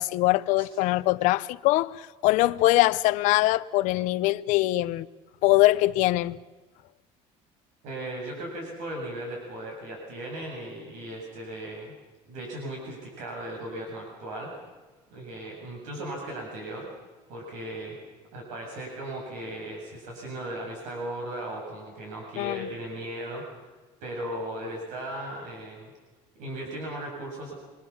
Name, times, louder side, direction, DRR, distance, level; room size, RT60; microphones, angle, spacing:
voice 1, 0.0-5.1 5.4-6.4 22.4-22.7, left 18 dB, 70° left, 0.8 m, -23 dB
voice 2, 7.8-11.9 12.3-14.5 15.1-16.9 17.3-18.0 18.3-23.4 24.0-25.9 26.4-27.5, right 1 dB, 70° right, 7.6 m, -37 dB
27.0 x 23.5 x 7.3 m
cardioid pair, 155°, 13 cm